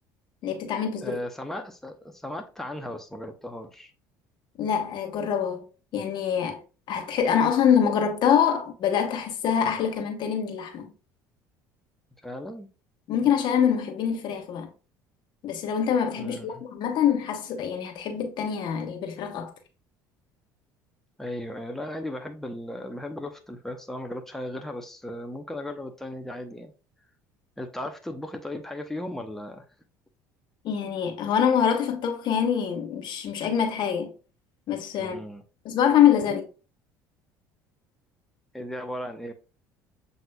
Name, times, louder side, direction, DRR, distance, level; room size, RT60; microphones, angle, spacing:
voice 1, 0.4-1.2 4.6-5.7 5.9-6.6 6.9-10.9 13.1-14.7 15.4-19.5 30.6-34.1 34.7-35.2 35.6-36.5, left 8 dB, 55° left, 1.1 m, -25 dB
voice 2, 1.0-3.9 12.2-12.7 16.2-16.6 21.2-26.7 27.6-29.6 35.0-35.4 38.5-39.3, left 1 dB, 5° left, 0.7 m, -36 dB
7.6 x 2.7 x 2.2 m
hypercardioid pair, 70°, 9 cm